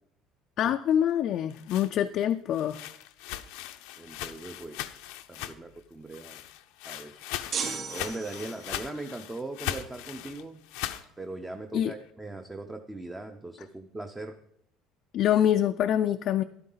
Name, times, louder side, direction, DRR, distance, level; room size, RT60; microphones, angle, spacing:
voice 1, 0.6-2.8 11.7-11.9 15.1-16.4, left 10 dB, 45° left, 7 dB, 0.4 m, -25 dB
sound 1, 1.3-5.8 6.1-11.1, left 13 dB, 90° left, 0.7 m, -39 dB
voice 2, 4.0-4.8 5.3-6.4 6.8-7.2 7.9-10.6 11.2-14.3, right 2 dB, 10° right, 4 dB, 0.6 m, -40 dB
sound 2, 7.5-8.9, right 6 dB, 40° right, 2.9 m, -35 dB
13.0 x 11.0 x 3.9 m, 0.72 s
cardioid pair, 155°, 0 cm